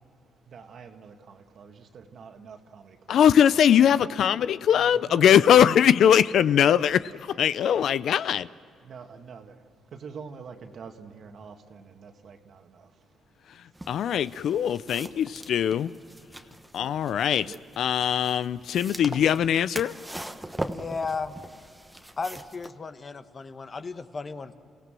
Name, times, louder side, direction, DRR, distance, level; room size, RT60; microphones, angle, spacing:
voice 1, 0.5-3.3 3.9-4.2 4.7-5.3 8.8-13.1 17.4-17.6, right 5 dB, 60° right, 2.0 m, -46 dB
voice 2, 3.1-8.5 13.9-15.9 16.7-19.9, left 9 dB, 70° left, 0.5 m, -21 dB
sound 1, 13.7-22.7, right 1 dB, 5° right, 1.2 m, -41 dB
voice 3, 20.5-21.4 22.2-24.5, left 4 dB, 35° left, 1.2 m, -34 dB
29.5 x 16.5 x 7.6 m
cardioid pair, 90°, 0 cm